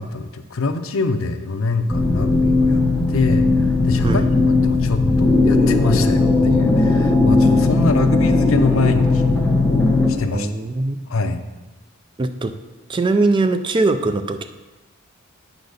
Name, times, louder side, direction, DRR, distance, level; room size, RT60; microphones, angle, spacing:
voice 1, 0.0-2.8 3.1-3.5 3.8-10.5 11.1-11.4, left 3 dB, 70° left, 9 dB, 0.6 m, -24 dB
sound 1, 1.9-10.1, left 3 dB, 5° left, 1.0 m, -17 dB
voice 2, 10.3-11.0 12.2-12.6 12.9-14.5, right 3 dB, 25° right, 9 dB, 0.4 m, -21 dB
8.8 x 4.0 x 6.5 m, 1.2 s
head